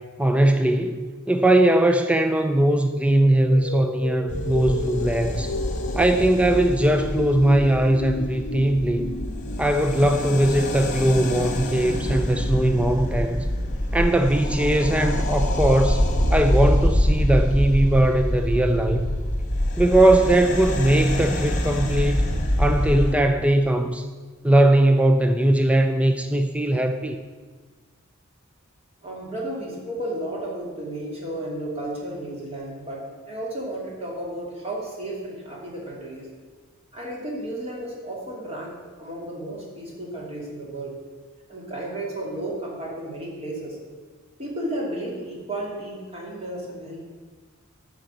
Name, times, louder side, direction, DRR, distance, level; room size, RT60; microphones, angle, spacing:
voice 1, 0.2-5.5 5.9-9.1 9.6-13.5 13.9-16.0 16.3-19.1 19.8-22.2 22.6-24.1 24.4-27.2, right 1 dB, 5° right, 6 dB, 0.4 m, -20 dB
sound 1, 3.2-12.1, left 3 dB, 65° left, 0.6 m, -34 dB
sound 2, 4.3-23.1, left 1 dB, 35° left, 1.4 m, -25 dB
voice 2, 29.0-36.3 36.9-41.0 41.5-43.8 44.4-47.0, right 1 dB, 30° right, -3 dB, 2.7 m, -33 dB
11.5 x 5.2 x 7.9 m, 1.4 s
head